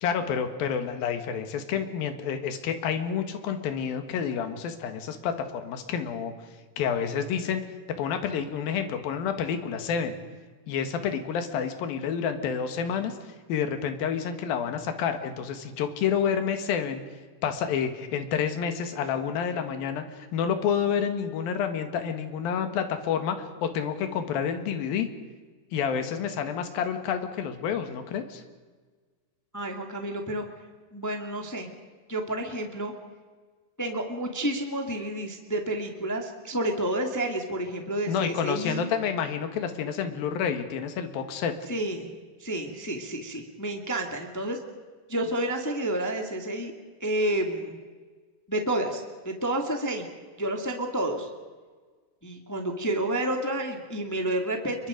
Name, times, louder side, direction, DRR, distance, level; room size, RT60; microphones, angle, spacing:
voice 1, 0.0-6.3 6.8-7.6 8.0-10.2 10.7-13.2 13.5-17.0 17.4-25.1 25.7-28.4 38.1-41.5, left 7 dB, 85° left, 7 dB, 3.5 m, -29 dB
voice 2, 29.5-30.4 30.9-31.7 32.1-32.9 33.8-38.8 41.7-42.1 42.4-44.6 45.1-46.7 47.0-47.8 48.5-50.0 50.4-51.3 52.2-54.9, right 1 dB, 5° left, 3 dB, 1.5 m, -30 dB
29.5 x 23.0 x 5.2 m, 1.4 s
omnidirectional pair, 4.1 m